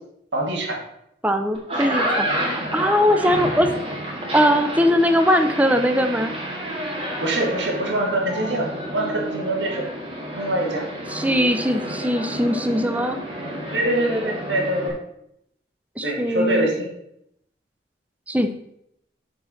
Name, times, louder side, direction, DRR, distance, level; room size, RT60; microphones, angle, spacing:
voice 1, 0.3-0.8 7.2-9.9 10.3-10.9 13.7-15.0 16.0-16.9, right 1 dB, 85° right, -1 dB, 2.3 m, -24 dB
voice 2, 1.2-3.7 4.3-6.3 11.1-13.2 16.0-16.7 18.3-18.5, equal, 10° right, 7 dB, 0.6 m, -20 dB
sound 1, 1.5-14.9, right 1 dB, 30° right, 2.1 m, -30 dB
6.8 x 5.1 x 6.3 m, 0.76 s
head